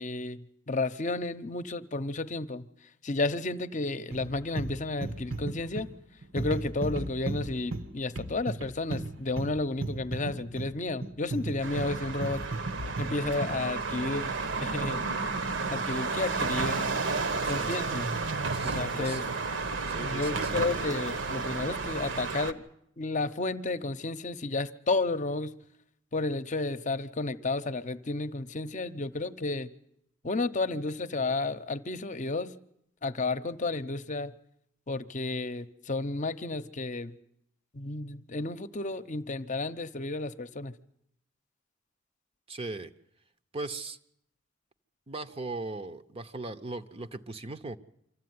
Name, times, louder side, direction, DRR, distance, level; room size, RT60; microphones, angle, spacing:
voice 1, 0.0-2.7 3.0-5.9 6.3-12.4 13.0-15.1 15.7-17.0 17.5-18.1 18.6-19.2 20.0-22.6 23.0-25.5 26.1-29.7 30.2-32.5 33.0-34.3 34.9-37.1 37.7-40.7, left 3 dB, 40° left, 0.8 m, -32 dB
sound 1, 4.1-13.7, right 2 dB, 80° right, 1.5 m, -36 dB
sound 2, 11.6-22.5, right 4 dB, 65° right, 1.2 m, -32 dB
voice 2, 17.3-17.9 18.5-19.2 19.9-21.0 42.5-42.9 43.5-44.0 45.1-47.8, right 2 dB, 30° right, 0.8 m, -39 dB
25.0 x 14.0 x 9.5 m
head